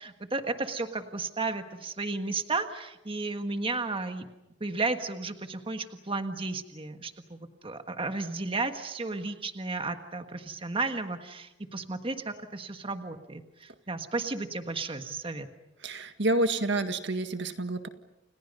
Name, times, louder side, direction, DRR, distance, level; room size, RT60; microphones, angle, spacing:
voice 1, 0.0-4.3 4.6-15.5, right 3 dB, 30° right, 7 dB, 1.5 m, -33 dB
voice 2, 15.8-17.9, right 2 dB, 65° right, 8 dB, 1.8 m, -28 dB
30.0 x 29.5 x 5.5 m, 0.93 s
head